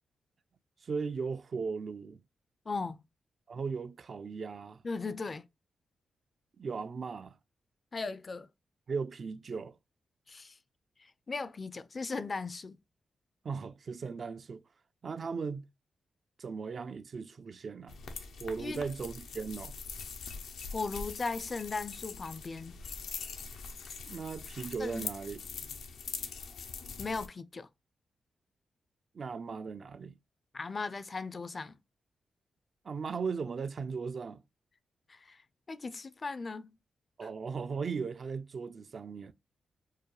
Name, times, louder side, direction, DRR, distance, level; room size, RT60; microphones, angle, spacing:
voice 1, 0.8-2.2 3.5-4.8 6.6-7.4 8.9-9.8 13.4-14.6 15.0-15.6 16.4-18.0 18.4-19.7 24.1-25.4 29.1-30.2 32.8-34.4 37.2-39.3, right 5 dB, 55° right, 0.4 m, -37 dB
voice 2, 2.7-3.0 4.8-5.4 7.9-8.5 10.3-10.6 11.3-12.8 18.6-18.8 20.7-22.8 24.8-25.1 27.0-27.7 30.5-31.8 35.1-35.4 35.7-36.8 37.2-37.3, left 4 dB, 40° left, 0.4 m, -37 dB
sound 1, 17.9-27.3, left 5 dB, 85° left, 0.6 m, -43 dB
4.6 x 2.2 x 3.1 m
cardioid pair, 80°, 0 cm